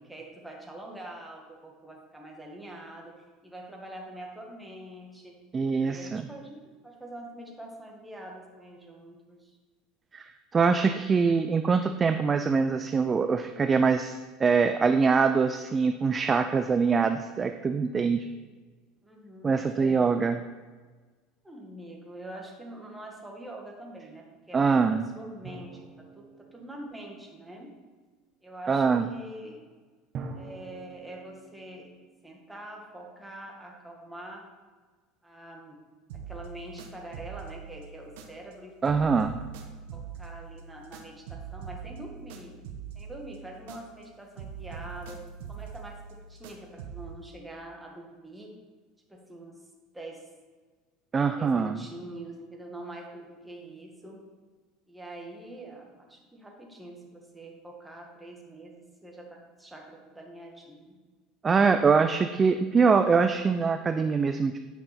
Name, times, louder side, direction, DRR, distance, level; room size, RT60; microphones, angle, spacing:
voice 1, 0.0-3.1 3.4-5.4 5.8-9.6 19.0-20.1 21.4-27.7 28.4-29.6 30.3-31.9 32.2-34.4 35.2-35.8 36.3-38.8 39.9-42.6 42.9-45.2 45.5-48.5 49.1-49.6 49.9-50.2 51.4-54.2 54.9-61.0, right 1 dB, 5° right, 0 dB, 1.6 m, -44 dB
voice 2, 5.5-6.2 10.1-18.3 19.4-20.4 24.5-25.0 28.7-29.1 38.8-39.4 51.1-51.8 61.4-64.6, right 5 dB, 20° right, 8 dB, 0.4 m, -24 dB
sound 1, 25.4-27.8 30.1-33.0, right 4 dB, 40° right, 1.0 m, -45 dB
sound 2, 36.1-38.6 38.8-44.1 44.4-47.2, right 7 dB, 85° right, 1.0 m, -43 dB
9.4 x 5.9 x 4.3 m, 1.4 s
supercardioid pair, 125°, 0 cm